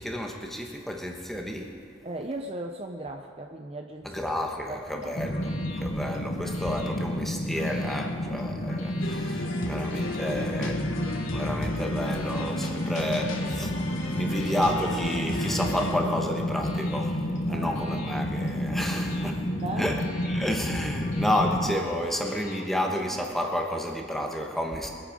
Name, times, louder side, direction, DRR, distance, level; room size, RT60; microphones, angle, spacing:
voice 1, 0.0-1.8 4.0-5.5 5.8-10.8 11.3-19.5 19.8-20.0 20.3-24.9, equal, ahead, 1 dB, 1.2 m, -31 dB
voice 2, 2.0-4.2 4.7-5.1 9.6-9.8 10.3-10.6 17.5-17.7 19.6-19.9, right 2 dB, 30° right, 3 dB, 0.6 m, -37 dB
sound 1, 4.7-23.2, left 3 dB, 60° left, 2.6 m, -46 dB
sound 2, 5.2-21.7, left 1 dB, 35° left, 0.8 m, -30 dB
sound 3, 9.0-16.0, left 1 dB, 75° left, 1.4 m, -35 dB
23.0 x 8.7 x 5.2 m, 2.4 s
head